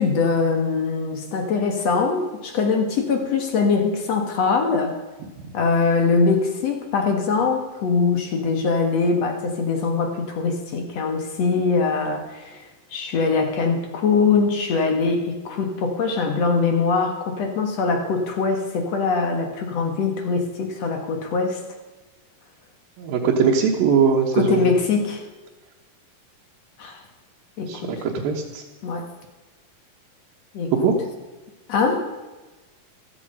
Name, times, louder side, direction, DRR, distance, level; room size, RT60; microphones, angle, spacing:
voice 1, 0.0-5.0 5.5-12.6 12.9-21.6 24.3-25.2 26.8-27.0 27.6-28.1 28.8-29.1 30.5-30.7 31.7-32.1, left 4 dB, 55° left, 4 dB, 2.3 m, -22 dB
voice 2, 23.0-24.6 27.7-28.6 30.7-30.9, right 6 dB, 80° right, -1 dB, 3.1 m, -21 dB
15.0 x 13.5 x 5.5 m, 1.2 s
omnidirectional pair, 4.1 m